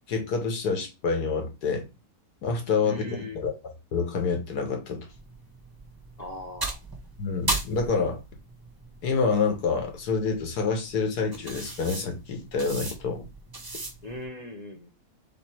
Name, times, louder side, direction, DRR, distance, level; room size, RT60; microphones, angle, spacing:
voice 1, 0.1-1.9 2.4-5.1 7.2-8.2 9.0-13.3, left 5 dB, 80° left, 1.7 m, -27 dB
voice 2, 2.8-3.4 6.2-6.8 14.0-14.9, left 1 dB, 45° left, 0.5 m, -39 dB
sound 1, 5.1-14.2, right 2 dB, 25° right, 0.5 m, -37 dB
3.8 x 3.2 x 4.4 m
omnidirectional pair, 1.7 m